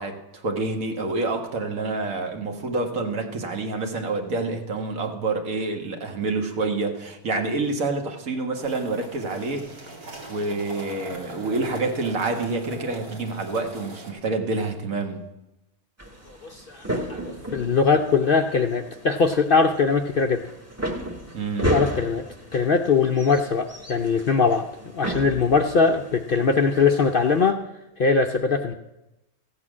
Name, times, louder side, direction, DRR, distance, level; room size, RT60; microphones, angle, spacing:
voice 1, 0.0-9.9 10.3-15.2 21.3-21.8, right 3 dB, 70° right, 4 dB, 1.8 m, -28 dB
sound 1, 8.5-14.1, right 2 dB, 85° right, 2.8 m, -41 dB
sound 2, 16.0-27.5, equal, 10° right, 1.1 m, -34 dB
voice 2, 16.3-20.4 21.7-22.2 22.5-24.7 24.9-27.6 28.0-28.7, left 5 dB, 55° left, 5 dB, 0.6 m, -21 dB
14.5 x 8.5 x 6.1 m, 0.92 s
omnidirectional pair, 1.5 m